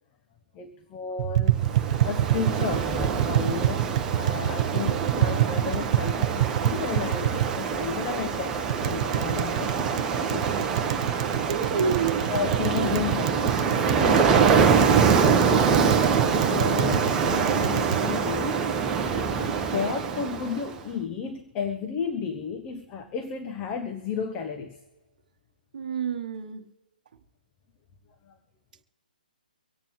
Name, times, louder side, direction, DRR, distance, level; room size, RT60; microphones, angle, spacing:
voice 1, 0.5-10.7 12.3-13.4 13.9-14.4 16.4-18.7 19.3-24.8 28.2-28.3, left 6 dB, 25° left, 0.9 m, -33 dB
Tap, 1.2-18.0, right 13 dB, 40° right, 0.5 m, -28 dB
Ocean, 1.6-20.7, right 6 dB, 15° right, 0.9 m, -25 dB
voice 2, 11.4-12.3 12.6-12.9 14.1-15.0 25.7-26.7, right 6 dB, 60° right, 1.1 m, -30 dB
25.0 x 8.7 x 3.1 m
hypercardioid pair, 140°, 5 cm